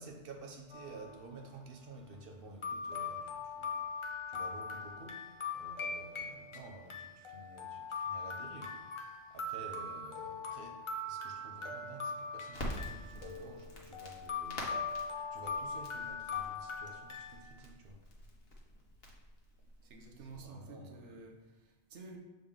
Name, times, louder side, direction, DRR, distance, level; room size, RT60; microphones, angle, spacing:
voice 1, 0.0-5.3 5.5-8.9 9.3-15.0 15.3-18.0 20.3-21.2, right 2 dB, 55° right, 2 dB, 0.9 m, -52 dB
sound 1, 0.7-1.2 2.1-2.2 2.6-17.4, left 4 dB, 40° left, 0.4 m, -41 dB
Crackle, 12.5-20.4, left 1 dB, 55° left, 1.3 m, -47 dB
voice 2, 19.8-22.2, right 3 dB, 75° right, 3 dB, 1.2 m, -51 dB
6.8 x 3.9 x 3.6 m, 1.2 s
omnidirectional pair, 1.2 m